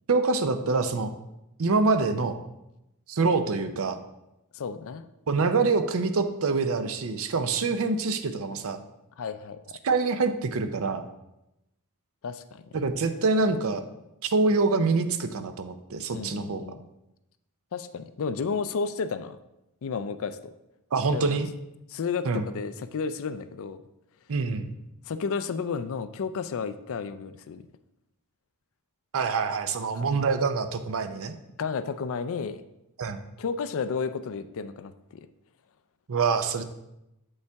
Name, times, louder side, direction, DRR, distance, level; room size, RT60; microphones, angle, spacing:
voice 1, 0.1-1.1 1.6-2.4 3.1-4.0 5.3-8.8 9.8-11.1 12.7-13.8 14.2-16.6 20.9-21.5 22.2-22.5 24.3-24.7 29.1-31.3 33.0-33.2 36.1-36.6, right 4 dB, 65° right, 9 dB, 0.6 m, -25 dB
voice 2, 4.5-5.1 9.2-9.8 12.2-12.9 16.1-16.8 17.7-19.4 19.8-20.5 21.1-21.4 21.9-23.8 25.1-27.7 29.9-30.0 31.6-32.6 33.4-35.3, left 5 dB, 65° left, 12 dB, 0.4 m, -32 dB
8.1 x 5.4 x 3.4 m, 0.90 s
head